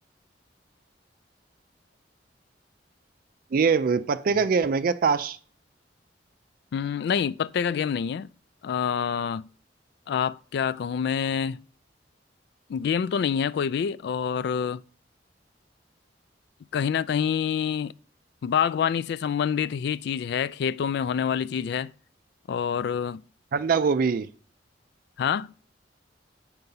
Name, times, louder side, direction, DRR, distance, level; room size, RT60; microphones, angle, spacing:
voice 1, 3.5-5.4 23.5-24.3, right 5 dB, 55° right, 0.4 m, -23 dB
voice 2, 6.7-8.3 8.6-9.5 10.1-11.6 12.7-14.8 16.7-17.9 18.4-21.9 22.5-23.2 25.2-25.5, left 7 dB, 65° left, 0.3 m, -27 dB
7.9 x 4.7 x 5.5 m
head